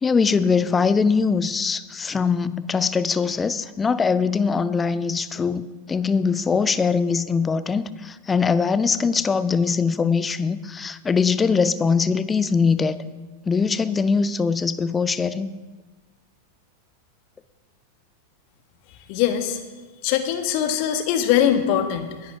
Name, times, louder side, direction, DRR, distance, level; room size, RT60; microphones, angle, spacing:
voice 1, 0.0-13.0 13.5-15.5, left 5 dB, 15° left, 15 dB, 0.6 m, -22 dB
voice 2, 19.1-19.6 20.0-22.4, left 10 dB, 45° left, 7 dB, 1.4 m, -22 dB
20.5 x 10.5 x 3.4 m, 1.3 s
figure-of-eight pair, 90°, 0 cm